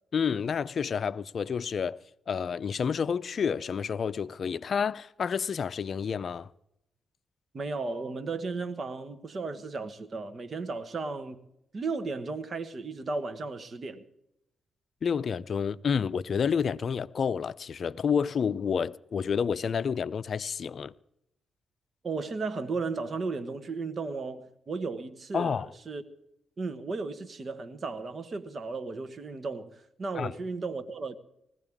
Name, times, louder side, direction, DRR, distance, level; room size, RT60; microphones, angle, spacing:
voice 1, 0.1-2.0 2.3-6.5 15.0-20.9 25.3-25.7 30.1-30.3, left 6 dB, 60° left, 0.5 m, -29 dB
voice 2, 7.5-11.4 11.7-14.0 22.0-26.0 26.6-31.2, right 3 dB, 45° right, 1.4 m, -35 dB
20.0 x 15.5 x 3.6 m
cardioid pair, 70°, 0 cm